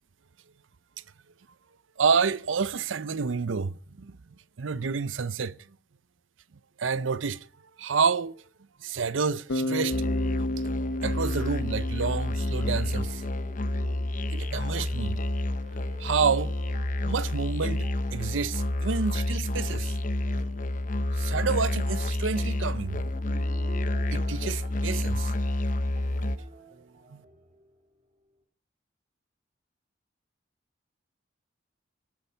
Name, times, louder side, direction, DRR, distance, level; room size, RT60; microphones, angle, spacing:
voice 1, 2.0-4.1 4.6-5.5 6.8-7.4 7.8-8.4 8.8-10.0 11.0-13.2 14.3-15.2 16.0-16.5 17.1-20.0 21.1-23.1 24.1-25.3, right 5 dB, 85° right, 0.6 m, -29 dB
sound 1, 9.4-28.0, right 1 dB, 40° right, 2.7 m, -52 dB
Bass guitar, 9.5-13.6, left 1 dB, 85° left, 1.0 m, -33 dB
Musical instrument, 9.9-26.4, left 1 dB, 45° left, 0.8 m, -29 dB
19.5 x 9.5 x 5.7 m
head